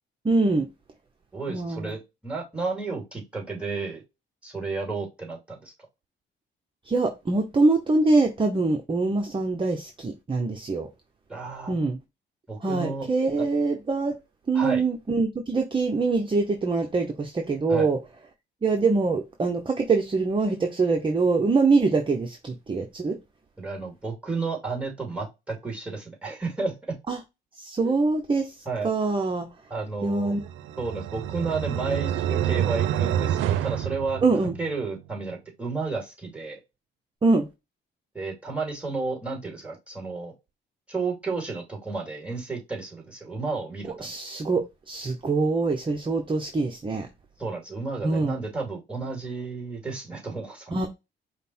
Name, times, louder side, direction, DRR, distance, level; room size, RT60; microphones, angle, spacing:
voice 1, 0.2-0.7 1.5-1.9 6.9-10.9 11.7-12.0 12.6-14.2 14.5-18.0 18.6-23.2 27.1-27.2 27.6-29.5 30.0-30.4 34.2-34.5 37.2-37.5 44.0-47.1 48.0-48.4 50.7-50.9, right 3 dB, 25° right, 0.7 m, -24 dB
voice 2, 1.3-4.0 4.4-5.7 11.3-11.8 12.5-13.1 13.4-13.5 14.5-14.8 17.7-17.9 23.6-26.7 27.8-27.9 28.7-28.9 29.7-30.4 30.8-34.2 34.6-36.6 38.1-40.3 40.9-44.1 47.4-50.9, right 4 dB, 5° right, 2.2 m, -32 dB
sound 1, 30.3-34.8, right 11 dB, 85° right, 0.5 m, -27 dB
5.2 x 2.1 x 4.2 m
cardioid pair, 90°, 20 cm